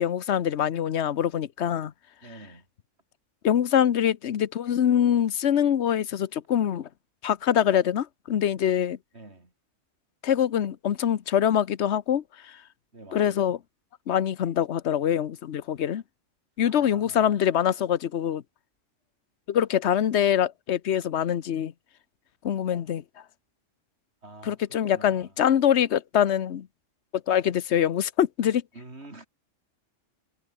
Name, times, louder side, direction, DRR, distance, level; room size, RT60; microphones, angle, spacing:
voice 1, 0.0-1.9 3.4-6.9 7.2-9.0 10.2-12.6 13.1-13.6 14.1-16.0 16.6-18.4 19.5-21.7 22.4-23.0 24.5-26.7 27.3-28.6, left 9 dB, 65° left, 1.1 m, -24 dB
voice 2, 2.2-2.7 9.1-9.5 12.9-13.5 16.6-17.3 24.2-25.3 28.7-29.3, right 2 dB, 60° right, 5.0 m, -47 dB
omnidirectional pair, 1.3 m